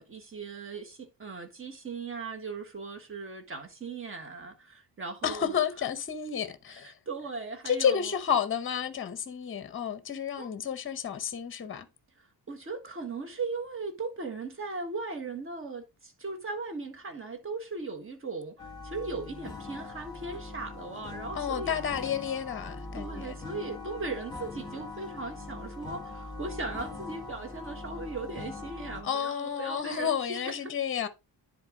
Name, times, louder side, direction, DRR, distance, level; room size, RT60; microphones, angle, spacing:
voice 1, 0.0-5.5 6.8-8.0 10.4-10.5 12.5-22.1 22.9-30.5, right 3 dB, 30° right, 1.5 m, -38 dB
voice 2, 5.2-7.0 7.6-11.9 21.3-23.3 29.0-31.1, left 8 dB, 30° left, 0.8 m, -31 dB
sound 1, 18.6-29.0, left 3 dB, 10° left, 1.4 m, -41 dB
10.5 x 4.1 x 3.7 m
wide cardioid pair, 155°, 43 cm